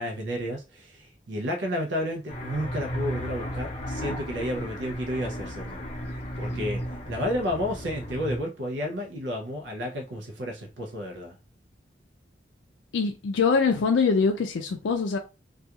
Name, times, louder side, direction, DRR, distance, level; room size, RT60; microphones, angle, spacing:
voice 1, 0.0-5.8 6.4-6.8 7.1-11.4, equal, 70° right, 0.5 m, -31 dB
sound 1, 2.3-8.4, equal, 40° left, 0.6 m, -34 dB
voice 2, 12.9-15.2, left 5 dB, 85° left, 0.4 m, -23 dB
2.3 x 2.3 x 2.7 m
head